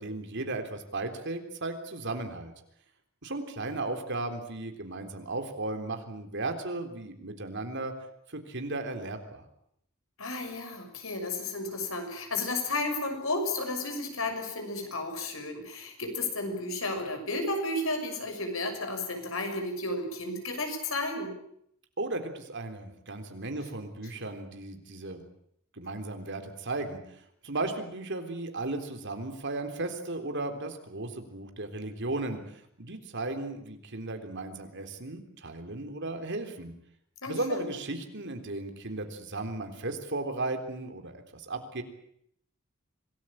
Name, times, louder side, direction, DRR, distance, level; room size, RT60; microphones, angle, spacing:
voice 1, 0.0-2.5 3.2-7.9 8.3-9.4 22.0-25.2 25.7-36.7 37.3-41.8, right 2 dB, 60° right, 6 dB, 3.7 m, -35 dB
voice 2, 10.2-21.3 37.2-37.7, left 2 dB, 75° left, 5 dB, 6.5 m, -33 dB
26.5 x 19.0 x 8.8 m, 0.71 s
head